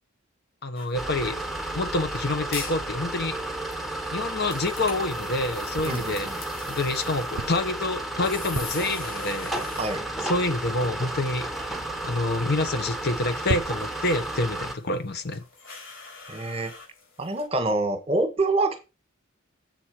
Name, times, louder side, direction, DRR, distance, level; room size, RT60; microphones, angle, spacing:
voice 1, 0.6-1.4 1.7-3.4 4.1-6.3 6.7-9.6 10.2-11.8 12.0-15.4, left 2 dB, 50° left, 1.0 m, -27 dB
sound 1, 0.7-17.5, left 5 dB, 65° left, 4.7 m, -45 dB
sound 2, 0.9-14.7, right 1 dB, ahead, 1.4 m, -32 dB
sound 3, 5.7-6.4 7.0-8.1 8.3-9.4 10.0-10.1 10.4-16.9, right 4 dB, 65° right, 0.5 m, -39 dB
voice 2, 5.8-6.4 9.8-10.0 16.3-16.7 17.2-18.8, right 2 dB, 30° right, 1.4 m, -26 dB
7.5 x 4.4 x 6.3 m
head